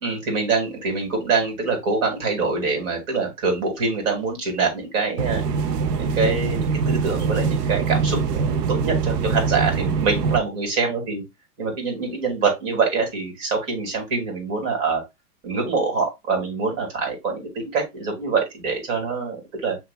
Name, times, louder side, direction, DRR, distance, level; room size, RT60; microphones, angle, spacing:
voice 1, 0.0-5.4 6.0-11.2 11.6-15.0 15.4-19.8, right 4 dB, 50° right, 3 dB, 2.4 m, -25 dB
sound 1, 5.2-10.4, right 5 dB, 75° right, 0.8 m, -23 dB
6.7 x 3.0 x 2.2 m, 0.21 s
hypercardioid pair, 120°, 48 cm